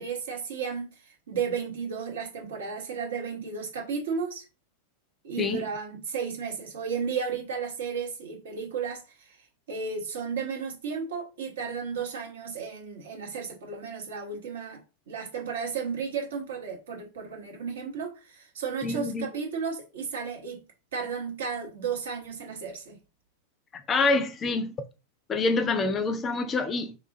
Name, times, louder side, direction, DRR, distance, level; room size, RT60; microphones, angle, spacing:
voice 1, 0.0-4.5 5.2-20.6 20.9-23.0, right 6 dB, 60° right, 0.8 m, -34 dB
voice 2, 18.8-19.3 23.7-24.7 25.3-27.0, left 3 dB, 25° left, 0.3 m, -26 dB
3.0 x 2.3 x 2.5 m
figure-of-eight pair, 90°, 0 cm